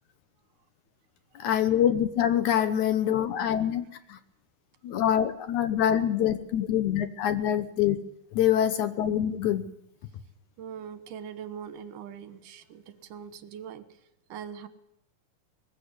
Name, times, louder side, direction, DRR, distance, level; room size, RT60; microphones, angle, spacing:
voice 1, 1.4-4.2 4.8-8.0 8.3-9.6, left 10 dB, 70° left, 11 dB, 2.2 m, -25 dB
voice 2, 10.6-13.9 14.3-14.7, right 8 dB, 70° right, 12 dB, 2.7 m, -41 dB
21.0 x 15.5 x 9.6 m, 0.77 s
omnidirectional pair, 4.0 m